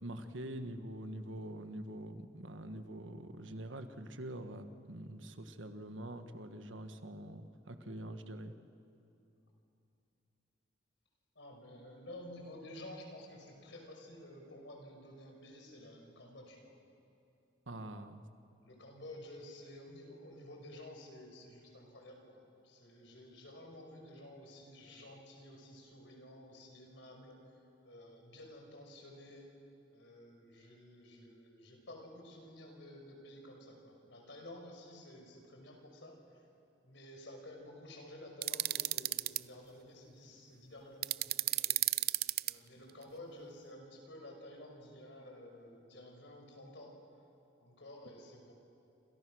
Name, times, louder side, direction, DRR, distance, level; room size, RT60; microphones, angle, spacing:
voice 1, 0.0-8.5 17.7-18.2, right 1 dB, 85° right, 8 dB, 1.5 m, -45 dB
voice 2, 11.4-16.7 18.6-27.4 27.8-29.5 29.9-36.2 36.8-41.8 42.4-47.0 47.6-48.5, left 1 dB, 70° left, 2 dB, 5.6 m, -52 dB
sound 1, 38.4-39.4 41.0-42.5, right 16 dB, 55° right, 0.5 m, -32 dB
28.5 x 27.5 x 6.4 m, 2.7 s
head